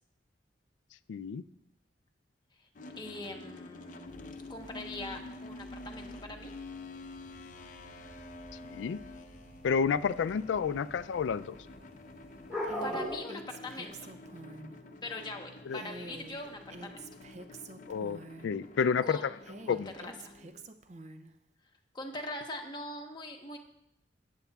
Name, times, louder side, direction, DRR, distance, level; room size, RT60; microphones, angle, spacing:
voice 1, 1.1-1.4 8.6-9.0 9.6-11.6 15.7-15.8 17.9-19.2 19.7-19.9, left 6 dB, 90° left, 15 dB, 0.3 m, -30 dB
sound 1, 2.8-20.7, left 2 dB, 45° left, 0.6 m, -49 dB
voice 2, 3.0-6.5 12.8-14.1 15.0-17.1 19.0-19.3 19.7-20.3 21.9-23.6, left 2 dB, 25° left, 2 dB, 1.1 m, -42 dB
sound 2, 4.0-13.2, equal, 5° right, 3.6 m, -44 dB
Female speech woman speaking, 12.6-14.8 15.7-18.6 19.4-21.3, right 2 dB, 40° right, 0.5 m, -47 dB
14.0 x 9.1 x 2.3 m, 0.83 s
head